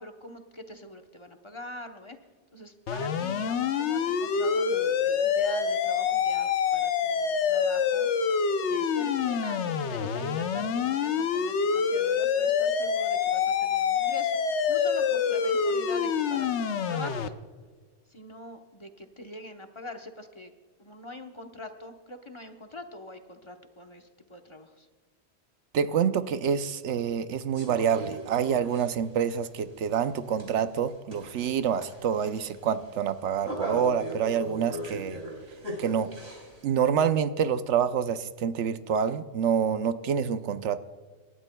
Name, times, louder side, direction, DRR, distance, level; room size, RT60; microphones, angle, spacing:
voice 1, 0.0-2.2 2.5-8.1 8.6-17.3 18.1-20.5 20.8-24.9, left 1 dB, 30° left, 5 dB, 0.9 m, -43 dB
sound 1, 2.9-17.3, left 6 dB, 80° left, 1.0 m, -26 dB
voice 2, 25.7-35.2 35.8-36.1 36.6-40.8, right 7 dB, 90° right, 11 dB, 1.0 m, -27 dB
sound 2, 27.5-36.6, equal, 65° right, 3.2 m, -40 dB
26.5 x 12.5 x 2.2 m, 1.5 s
omnidirectional pair, 1.1 m